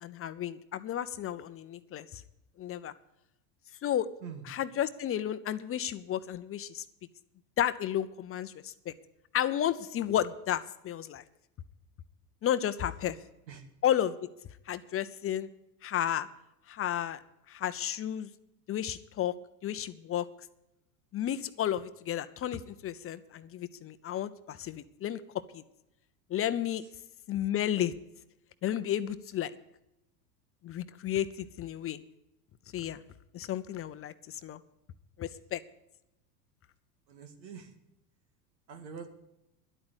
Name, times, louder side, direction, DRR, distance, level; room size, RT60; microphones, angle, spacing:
voice 1, 0.0-2.2 2.6-2.9 3.8-4.1 4.5-6.8 7.6-8.9 9.3-11.2 12.4-13.2 13.8-14.2 14.7-15.5 15.8-16.3 16.7-17.2 17.5-18.3 18.7-19.3 19.6-20.3 21.1-25.2 25.5-25.6 26.3-26.8 27.3-28.0 28.6-29.5 30.6-32.0 32.7-33.0 33.3-34.6 35.2-35.6, left 11 dB, 30° left, 12 dB, 0.6 m, -32 dB
voice 2, 37.1-37.7 38.7-39.1, right 6 dB, 85° right, 7 dB, 2.0 m, -45 dB
11.0 x 8.6 x 8.0 m, 0.86 s
hypercardioid pair, 100°, 50 cm